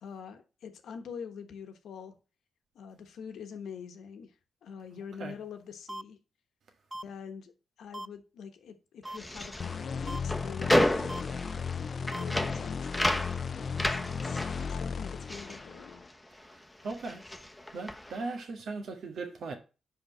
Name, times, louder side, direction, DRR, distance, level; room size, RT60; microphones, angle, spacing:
voice 1, 0.0-2.1 2.7-4.3 4.6-6.2 7.0-7.5 7.8-14.4 14.7-16.0, left 7 dB, 85° left, 1.1 m, -45 dB
sound 1, 5.9-6.0 6.9-7.0 7.9-8.1 9.0-9.2 10.1-10.2 11.1-11.2 12.1-12.2 13.0-13.1, right 1 dB, 15° right, 0.4 m, -39 dB
sound 2, 9.0-16.5 16.8-18.3, left 1 dB, 10° left, 1.0 m, -32 dB
sound 3, 9.6-16.1, left 6 dB, 55° left, 0.4 m, -35 dB
voice 2, 16.8-17.2 17.7-19.5, right 3 dB, 75° right, 1.6 m, -38 dB
5.3 x 5.1 x 6.5 m
cardioid pair, 60°, 0 cm